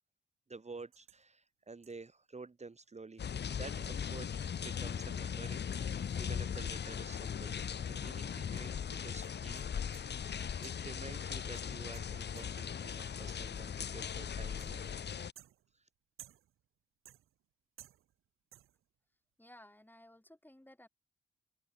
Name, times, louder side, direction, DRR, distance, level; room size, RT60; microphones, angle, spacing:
voice 1, 0.5-4.3 4.6-9.6 10.6-15.2 15.7-15.9, right 3 dB, 30° right, 2.3 m, -50 dB
sound 1, 0.9-1.3 1.8-2.1 2.8-2.9 3.2-3.3 3.7-7.4 7.7-7.8 8.6-10.2 10.6-11.0 11.5-12.8 13.6-13.9 14.6-15.0 15.4-16.7 17.0-17.5 17.8-18.3 18.5-18.9, right 12 dB, 85° right, 2.4 m, -61 dB
sound 2, 3.2-15.3, left 7 dB, 55° left, 1.0 m, -39 dB
voice 2, 19.4-20.9, left 1 dB, 10° left, 5.5 m, -57 dB
open air
cardioid pair, 60°, 21 cm